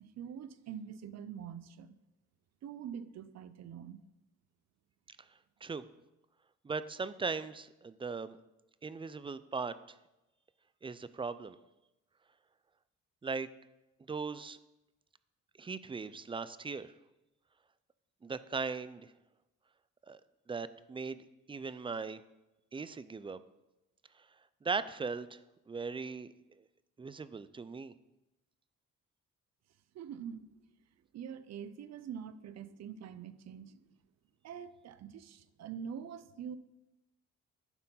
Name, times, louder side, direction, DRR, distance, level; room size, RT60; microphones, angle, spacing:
voice 1, 0.0-1.9 2.6-4.0 29.9-30.5 31.1-34.0 34.4-36.6, right 8 dB, 60° right, 14 dB, 0.6 m, -45 dB
voice 2, 6.6-8.4 8.8-9.7 10.8-11.6 13.2-13.5 14.1-14.6 15.6-16.9 18.2-19.1 20.1-20.2 20.5-22.2 22.7-23.4 24.6-25.4 25.7-26.3 27.0-27.9, right 4 dB, 15° right, 15 dB, 0.4 m, -38 dB
11.0 x 4.4 x 5.6 m, 0.97 s
cardioid pair, 90°, 30 cm